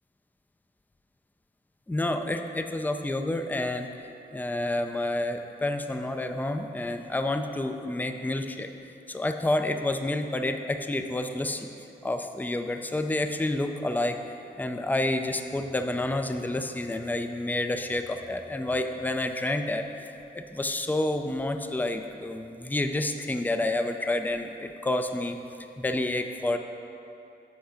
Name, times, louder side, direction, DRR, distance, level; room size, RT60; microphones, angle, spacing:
voice 1, 1.9-3.9 4.3-8.7 9.1-11.7 12.0-14.2 14.6-25.4 25.8-26.6, left 1 dB, 10° left, 6 dB, 0.5 m, -29 dB
8.1 x 4.6 x 5.0 m, 2.8 s
cardioid pair, 50°, 19 cm